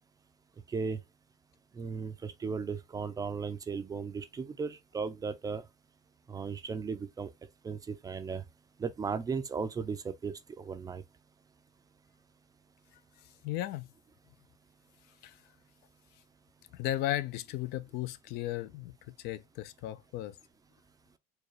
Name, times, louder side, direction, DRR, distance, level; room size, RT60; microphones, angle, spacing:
voice 1, 1.8-5.6 6.3-7.3 7.6-8.4 8.8-11.0, right 5 dB, 20° right, 0.4 m, -36 dB
voice 2, 13.4-13.9 15.2-15.3 16.7-18.9 19.2-20.3, left 14 dB, 55° left, 0.4 m, -35 dB
4.6 x 2.2 x 3.1 m
supercardioid pair, 120°, 20 cm